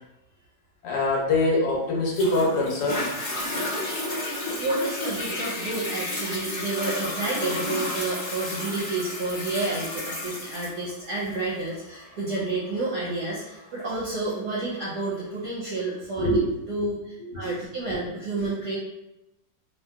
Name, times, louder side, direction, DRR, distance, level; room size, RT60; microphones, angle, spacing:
voice 1, 0.8-3.2 16.2-16.5 17.4-17.5 17.9-18.0, left 1 dB, 75° left, -2 dB, 1.5 m, -24 dB
Toilet flush, 2.1-15.2 15.8-15.9, left 1 dB, 30° left, 0.5 m, -33 dB
voice 2, 4.3-18.8, right 2 dB, 65° right, -6 dB, 1.1 m, -30 dB
3.0 x 2.8 x 2.2 m, 0.90 s
omnidirectional pair, 2.1 m